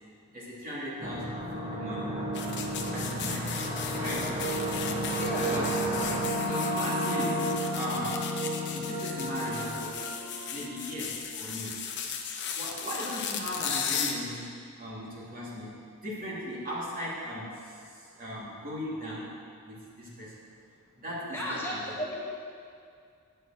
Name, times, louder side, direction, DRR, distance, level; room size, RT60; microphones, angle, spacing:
voice 1, 0.3-2.1 2.9-3.6 4.0-4.3 5.4-5.8 6.5-8.2 8.7-10.0 10.5-11.8 12.5-14.5 14.8-15.7 16.0-19.3 19.6-20.3 21.0-21.8, equal, 40° right, -6 dB, 2.8 m, -37 dB
sound 1, 1.0-10.8, right 1 dB, 20° right, 1.4 m, -32 dB
sound 2, 2.3-14.1, left 7 dB, 55° left, 0.9 m, -36 dB
voice 2, 5.2-5.5 21.3-22.1, equal, 10° left, -7 dB, 1.7 m, -34 dB
9.4 x 6.7 x 7.7 m, 2.3 s
head